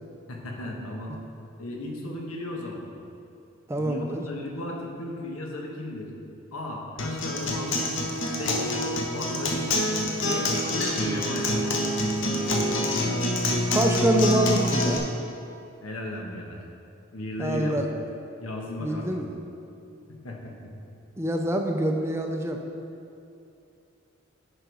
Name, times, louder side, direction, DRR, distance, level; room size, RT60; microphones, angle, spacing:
voice 1, 0.3-1.2 1.6-2.8 3.8-6.1 6.5-7.8 8.3-9.7 10.1-11.6 15.8-16.6 17.1-17.7 18.4-19.2 20.1-20.7, left 1 dB, 90° left, 0 dB, 1.2 m, -36 dB
voice 2, 3.7-4.2 13.7-15.1 17.4-17.9 18.8-19.3 21.2-22.6, right 1 dB, 10° right, 3 dB, 0.4 m, -25 dB
Acoustic guitar, 7.0-15.0, left 1 dB, 60° left, 1.0 m, -26 dB
10.5 x 5.1 x 4.7 m, 2.7 s
head